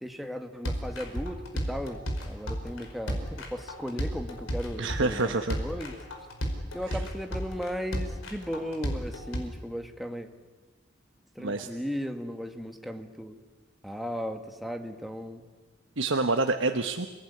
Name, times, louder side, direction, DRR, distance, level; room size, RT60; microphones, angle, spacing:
voice 1, 0.0-1.4 1.7-6.0 6.7-10.3 11.4-13.4 13.8-15.4, equal, ahead, 5 dB, 1.8 m, -36 dB
sound 1, 0.6-9.4, equal, 90° left, 5.2 m, -33 dB
voice 2, 4.8-5.6 6.9-7.0 11.4-11.7 16.0-17.1, right 3 dB, 75° right, 6 dB, 1.2 m, -27 dB
29.0 x 19.5 x 9.9 m, 1.3 s
head